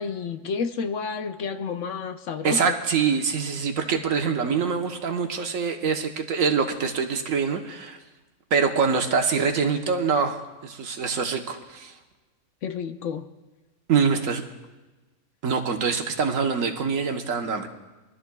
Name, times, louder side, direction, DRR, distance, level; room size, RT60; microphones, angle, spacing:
voice 1, 0.0-2.7 12.6-13.3, left 5 dB, 65° left, 7 dB, 1.1 m, -30 dB
voice 2, 2.4-8.0 8.5-11.9 13.9-14.4 15.4-17.7, right 5 dB, 80° right, 4 dB, 1.4 m, -24 dB
23.5 x 12.5 x 2.3 m, 1.2 s
omnidirectional pair, 1.4 m